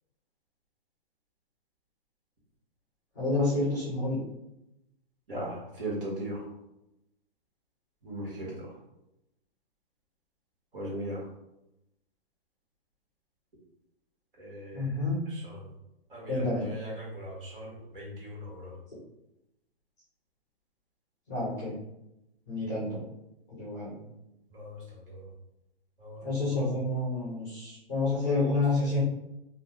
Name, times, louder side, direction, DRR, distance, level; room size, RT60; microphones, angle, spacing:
voice 1, 3.1-4.2 14.7-15.2 16.3-16.7 21.3-21.7 22.5-23.0 23.6-24.0 26.2-29.0, left 2 dB, 15° left, -8 dB, 0.8 m, -29 dB
voice 2, 5.3-6.5 8.0-8.5 10.7-11.3 14.4-14.9 15.3-15.6 16.1-18.7 24.5-25.3 26.0-26.6 28.2-29.0, right 1 dB, 60° right, -4 dB, 1.5 m, -39 dB
2.8 x 2.2 x 3.5 m, 0.87 s
hypercardioid pair, 175°, 31 cm